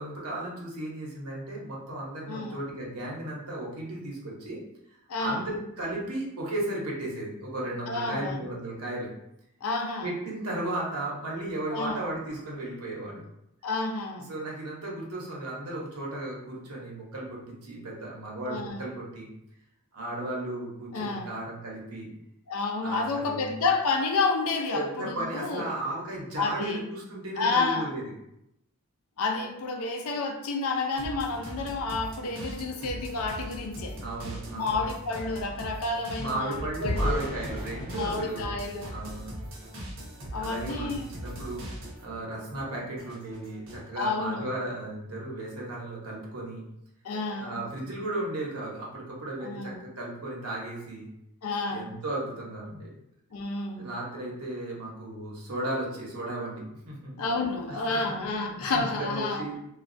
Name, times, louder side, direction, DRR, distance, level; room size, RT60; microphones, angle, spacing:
voice 1, 0.0-4.6 5.2-9.1 10.0-13.2 14.3-19.3 19.9-22.1 22.8-23.5 24.7-28.0 34.0-34.9 36.2-38.6 38.9-39.3 40.3-46.6 47.4-51.1 51.7-52.9 53.8-57.1 57.7-59.6, right 1 dB, 90° right, -3 dB, 0.9 m, -35 dB
voice 2, 5.1-5.5 7.9-8.4 9.6-10.1 11.7-12.0 13.6-14.3 18.5-18.8 20.9-21.3 22.5-25.7 26.4-26.8 27.4-27.9 29.2-34.0 34.6-37.2 37.9-39.0 40.3-41.0 44.0-44.5 47.0-47.6 49.4-49.8 51.4-51.9 53.3-53.9 57.2-59.4, left 3 dB, 75° left, 3 dB, 0.5 m, -30 dB
sound 1, 31.0-42.2 42.5-43.9, equal, 60° right, 0.8 m, -40 dB
sound 2, 34.4-39.7 40.2-40.4 40.8-41.0, left 1 dB, 25° left, 0.6 m, -37 dB
3.1 x 2.3 x 2.5 m, 0.82 s
head